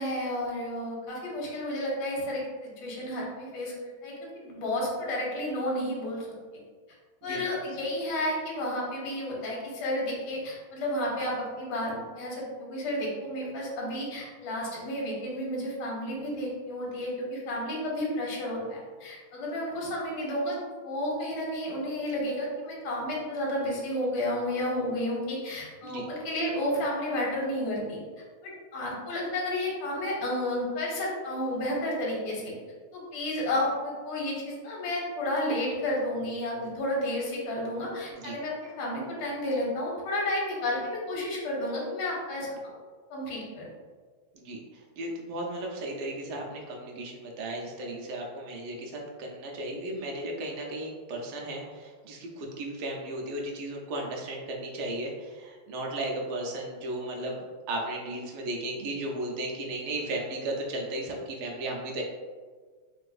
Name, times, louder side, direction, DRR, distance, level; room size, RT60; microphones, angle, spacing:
voice 1, 0.0-3.7 4.0-6.3 7.2-20.6 20.8-28.0 28.4-32.5 32.9-42.7 43.1-43.7, left 1 dB, 75° left, -3 dB, 1.6 m, -31 dB
voice 2, 44.3-62.0, right 1 dB, 85° right, 0 dB, 1.5 m, -35 dB
4.0 x 2.4 x 2.3 m, 1.5 s
omnidirectional pair, 2.4 m